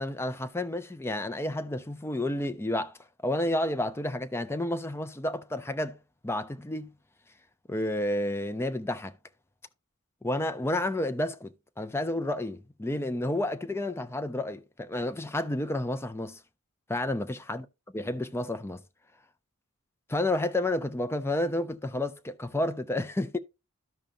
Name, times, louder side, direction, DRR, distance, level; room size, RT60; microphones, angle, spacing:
voice 1, 0.0-3.0 3.2-6.0 6.2-6.9 7.7-9.1 10.2-16.4 16.9-17.6 17.9-18.8 20.1-23.4, left 1 dB, 10° left, 0.5 m, -30 dB
13.5 x 5.1 x 2.7 m
head